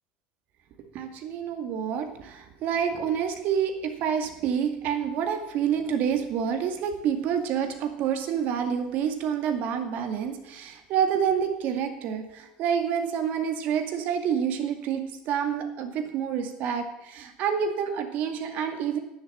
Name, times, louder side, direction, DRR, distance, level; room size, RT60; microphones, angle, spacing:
voice 1, 0.9-19.0, right 8 dB, 60° right, 6 dB, 2.1 m, -28 dB
10.5 x 7.4 x 8.7 m, 0.89 s
supercardioid pair, 110°, 3 cm